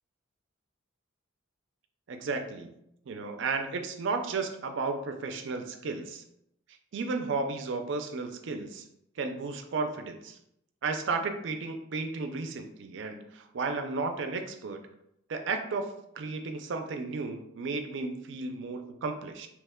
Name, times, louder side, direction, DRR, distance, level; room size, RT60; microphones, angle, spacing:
voice 1, 2.1-2.7 3.1-6.2 6.9-8.9 9.2-10.4 10.8-14.8 15.3-15.9 16.1-19.5, right 4 dB, 60° right, 6 dB, 0.4 m, -33 dB
2.9 x 2.1 x 3.5 m, 0.77 s
head